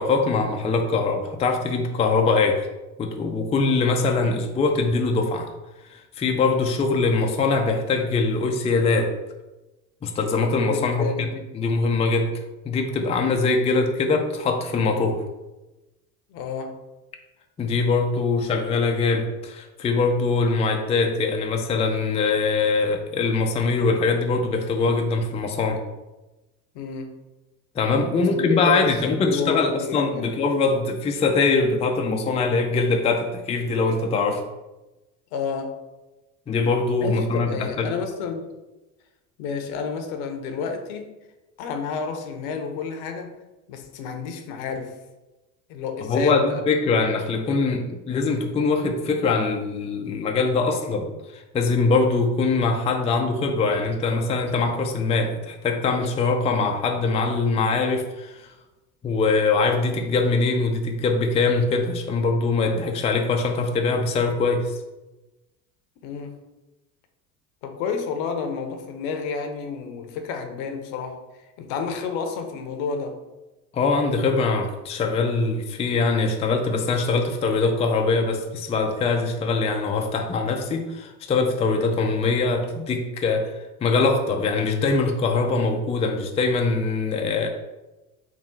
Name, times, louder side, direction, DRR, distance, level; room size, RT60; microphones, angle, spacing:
voice 1, 0.0-2.7 3.0-5.5 6.2-9.1 10.0-11.3 11.5-12.3 12.6-15.2 17.6-25.8 27.8-34.4 36.5-37.9 46.1-58.4 59.0-64.8 73.7-83.5 83.8-87.5, left 3 dB, 15° left, 3 dB, 0.4 m, -22 dB
voice 2, 10.7-11.4 16.3-16.8 26.7-27.2 28.1-30.3 35.3-35.8 37.0-38.5 39.4-41.1 41.6-43.4 43.7-45.0 45.7-46.6 66.0-66.4 67.6-71.2 71.6-73.2, left 5 dB, 65° left, 6 dB, 0.8 m, -30 dB
3.5 x 2.4 x 4.5 m, 1.1 s
hypercardioid pair, 75°, 45 cm